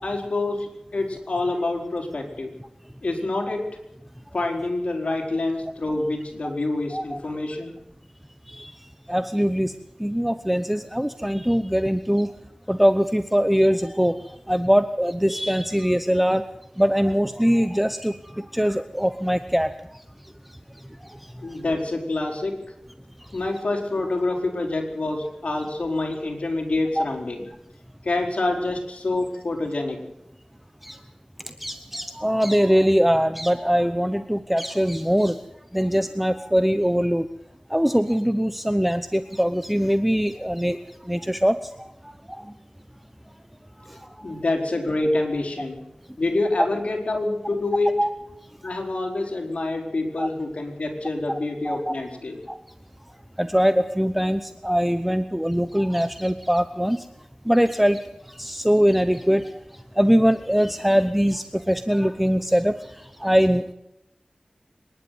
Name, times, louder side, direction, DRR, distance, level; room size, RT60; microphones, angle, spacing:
voice 1, 0.0-2.5 3.0-3.7 4.3-7.7 21.4-22.6 23.3-27.4 28.0-30.0 44.2-45.8 46.2-47.9 48.6-52.4, left 2 dB, 70° left, 2 dB, 4.4 m, -26 dB
voice 2, 9.1-9.7 10.0-12.3 12.7-14.1 14.5-16.4 16.8-19.7 27.0-27.1 30.8-31.0 31.6-35.4 35.7-37.3 37.7-40.8 41.1-41.9 42.3-42.4 48.0-48.1 50.2-50.3 51.6-51.9 52.5-52.6 53.4-57.0 57.5-58.0 58.4-59.6 60.0-62.7 63.2-63.7, equal, 5° right, 10 dB, 0.9 m, -22 dB
25.0 x 11.0 x 9.5 m, 0.86 s
wide cardioid pair, 55°, 2 cm